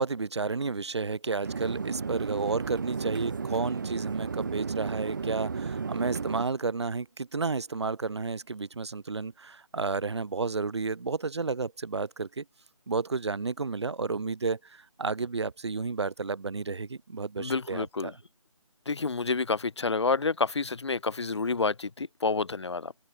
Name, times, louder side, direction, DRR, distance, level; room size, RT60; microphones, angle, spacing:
voice 1, 0.0-12.4 12.9-18.1, right 4 dB, 50° right, 1.3 m, -31 dB
sound 1, 1.4-6.4, right 5 dB, 35° right, 1.5 m, -33 dB
voice 2, 17.4-18.1 18.9-22.9, left 4 dB, 55° left, 1.4 m, -29 dB
open air
figure-of-eight pair, 170°, 18 cm